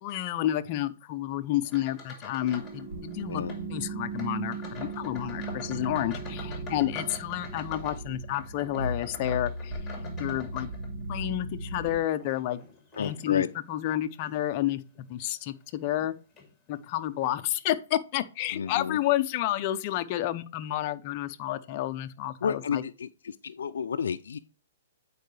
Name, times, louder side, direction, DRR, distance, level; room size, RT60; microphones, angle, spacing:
voice 1, 0.0-3.4 3.7-9.8 10.2-10.7 11.1-12.7 13.0-14.8 15.1-16.1 16.7-22.8, left 13 dB, 30° left, 0.6 m, -30 dB
sound 1, 1.6-2.8 3.1-3.6 4.1-11.2 11.7-13.5 14.2-14.4 15.0-15.1 16.0-16.1 16.4-16.5, left 4 dB, 5° left, 2.4 m, -45 dB
sound 2, 2.4-12.0, right 2 dB, 70° right, 1.9 m, -37 dB
voice 2, 13.0-13.5 18.5-19.0 22.4-24.4, left 7 dB, 85° left, 0.4 m, -31 dB
9.0 x 4.7 x 3.3 m
hypercardioid pair, 165°, 0 cm